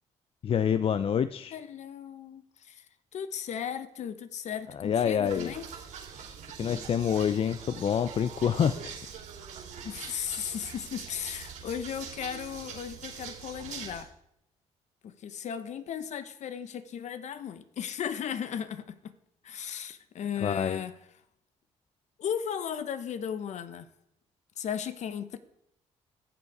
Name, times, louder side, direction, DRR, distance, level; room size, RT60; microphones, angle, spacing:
voice 1, 0.4-1.6 4.7-5.5 6.6-8.9 20.4-20.8, left 8 dB, 45° left, 0.5 m, -27 dB
voice 2, 1.5-2.9 3.1-5.6 9.8-14.1 15.0-19.1 19.4-20.9 22.2-23.9 24.6-25.4, left 8 dB, 60° left, 0.9 m, -36 dB
sound 1, 5.2-14.0, right 7 dB, 75° right, 3.4 m, -43 dB
14.0 x 7.0 x 4.8 m
supercardioid pair, 75°, 13 cm